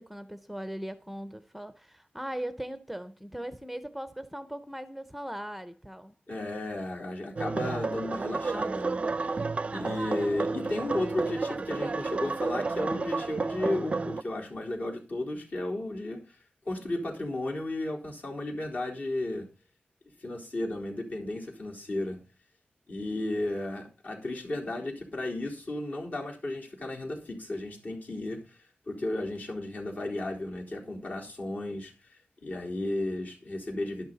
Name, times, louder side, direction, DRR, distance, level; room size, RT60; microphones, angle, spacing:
voice 1, 0.0-6.1 9.6-9.9, right 1 dB, 5° right, 0.7 m, -39 dB
voice 2, 6.3-9.4 9.7-16.4 16.7-19.5 20.2-22.2 22.9-28.6 28.9-34.1, left 2 dB, 50° left, 3.9 m, -34 dB
sound 1, 7.4-14.2, right 4 dB, 40° right, 0.5 m, -31 dB
12.0 x 11.5 x 4.0 m
wide cardioid pair, 140°, 3 cm